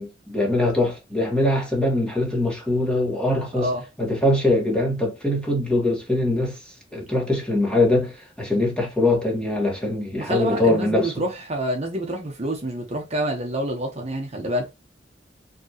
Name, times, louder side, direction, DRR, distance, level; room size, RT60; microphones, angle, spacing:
voice 1, 0.0-3.7 4.0-6.6 6.9-11.1, left 1 dB, 5° left, 1.8 m, -22 dB
voice 2, 10.2-14.7, right 1 dB, 35° right, 1.2 m, -27 dB
5.3 x 3.1 x 3.0 m
head